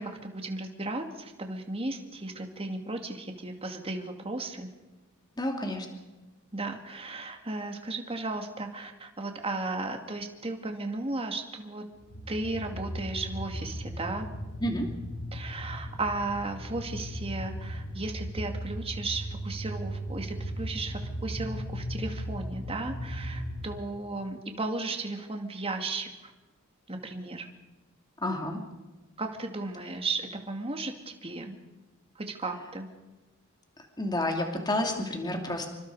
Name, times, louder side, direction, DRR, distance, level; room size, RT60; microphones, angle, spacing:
voice 1, 0.0-4.7 6.5-11.8 12.3-14.3 15.3-26.3 26.9-27.5 29.2-31.6 32.2-32.9, right 2 dB, 30° right, 4 dB, 2.3 m, -35 dB
voice 2, 5.4-5.9 14.6-14.9 28.2-28.6 33.8-35.7, left 1 dB, 20° left, 3 dB, 2.7 m, -30 dB
sound 1, 12.0-23.6, equal, 80° left, 7.0 m, -37 dB
27.5 x 24.0 x 4.9 m, 1.1 s
head